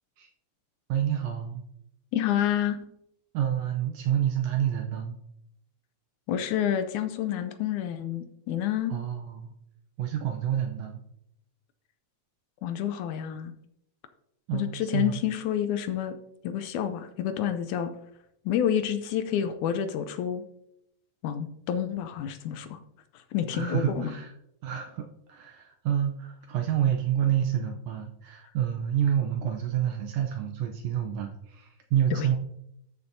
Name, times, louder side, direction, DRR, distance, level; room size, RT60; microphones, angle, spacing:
voice 1, 0.9-1.6 3.3-5.1 8.9-9.5 10.0-11.0 14.5-15.2 23.5-24.3 24.6-25.0 25.3-32.4, right 10 dB, 80° right, 4 dB, 1.5 m, -28 dB
voice 2, 2.1-2.8 6.3-8.9 12.6-13.5 14.5-16.2 16.4-17.9 18.5-20.4 21.2-22.8 23.3-24.1 32.1-32.3, left 10 dB, 80° left, 10 dB, 1.9 m, -29 dB
13.0 x 6.9 x 2.6 m, 0.78 s
omnidirectional pair, 3.7 m